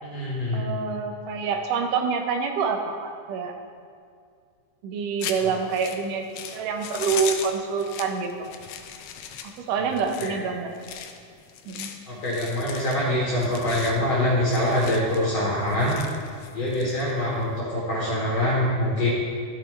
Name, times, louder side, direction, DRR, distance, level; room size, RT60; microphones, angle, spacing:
voice 1, 0.0-0.8 5.4-5.5 9.8-9.9 10.2-10.5 12.1-16.0 16.5-19.1, left 1 dB, 60° left, -6 dB, 2.4 m, -25 dB
voice 2, 0.5-3.6 4.8-8.5 9.4-10.7 11.7-11.9, right 5 dB, 90° right, 4 dB, 2.4 m, -27 dB
sound 1, 5.2-17.6, left 8 dB, 85° left, 1.4 m, -39 dB
12.0 x 8.0 x 3.2 m, 2.2 s
omnidirectional pair, 3.6 m